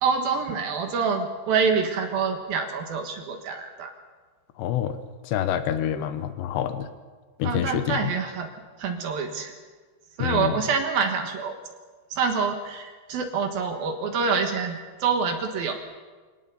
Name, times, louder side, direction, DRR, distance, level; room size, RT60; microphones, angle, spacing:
voice 1, 0.0-3.9 7.4-8.5 8.8-9.5 10.2-11.8 12.1-15.8, right 5 dB, 65° right, 5 dB, 2.9 m, -26 dB
voice 2, 4.6-5.0 5.2-6.9 7.4-8.1 10.2-10.5, left 10 dB, 75° left, 10 dB, 3.1 m, -27 dB
24.0 x 18.0 x 7.0 m, 1.4 s
omnidirectional pair, 5.2 m